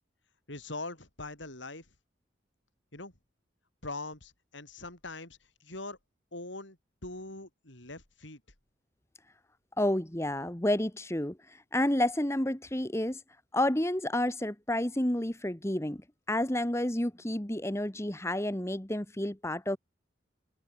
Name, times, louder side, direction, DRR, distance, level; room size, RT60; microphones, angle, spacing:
voice 1, 0.5-1.9 2.9-3.1 3.8-6.0 6.3-8.4, left 2 dB, 75° left, 6.9 m, -42 dB
voice 2, 9.8-13.2 13.5-16.0 16.3-19.8, left 1 dB, 15° left, 1.3 m, -30 dB
head